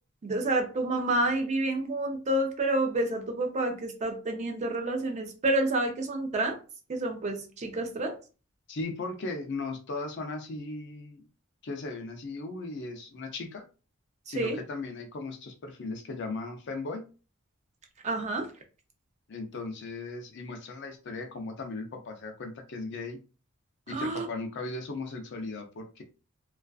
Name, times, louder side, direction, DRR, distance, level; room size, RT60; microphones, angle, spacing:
voice 1, 0.2-6.6 6.9-8.2 14.3-14.6 18.0-18.5 23.9-24.3, right 2 dB, 35° right, 3 dB, 0.4 m, -29 dB
voice 2, 8.7-11.3 11.6-13.7 14.3-17.0 19.3-23.2 23.9-26.0, left 3 dB, 55° left, 4 dB, 0.5 m, -37 dB
2.4 x 2.3 x 2.3 m, 0.34 s
head